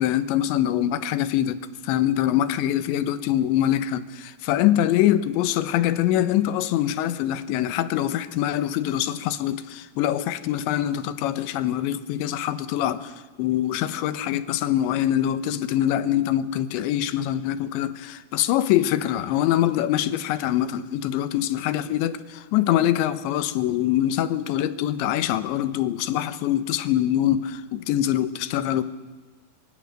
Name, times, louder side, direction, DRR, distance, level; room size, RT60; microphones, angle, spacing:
voice 1, 0.0-1.6 1.9-13.1 13.4-28.8, left 12 dB, 85° left, 3.4 m, -24 dB
24.5 x 24.0 x 7.7 m
omnidirectional pair, 5.1 m